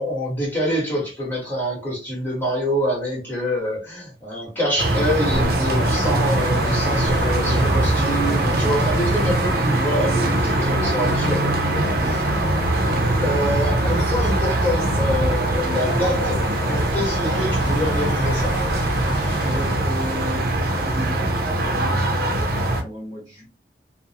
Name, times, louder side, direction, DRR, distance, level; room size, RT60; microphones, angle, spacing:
voice 1, 0.0-12.2 13.2-16.4 16.6-18.6, equal, 10° left, 1.1 m, -26 dB
sound 1, 4.8-22.8, right 1 dB, 55° right, 0.5 m, -22 dB
sound 2, 5.3-19.7, equal, 70° left, 0.8 m, -31 dB
voice 2, 7.4-8.3 11.9-12.1 19.0-23.4, equal, 20° right, 0.7 m, -35 dB
2.5 x 2.0 x 2.8 m
head